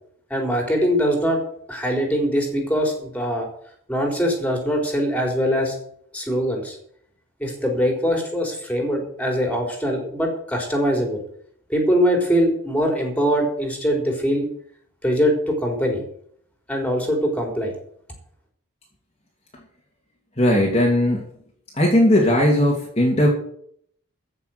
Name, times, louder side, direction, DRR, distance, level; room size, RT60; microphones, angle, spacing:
voice 1, 0.3-1.4 1.7-3.5 3.9-5.8 6.1-6.8 7.4-11.2 11.7-14.5 15.0-16.0 16.7-17.7, equal, 5° left, 2 dB, 4.0 m, -22 dB
voice 2, 20.4-21.2 21.8-23.3, left 1 dB, 30° left, -2 dB, 2.7 m, -17 dB
15.0 x 6.8 x 7.9 m, 0.64 s
head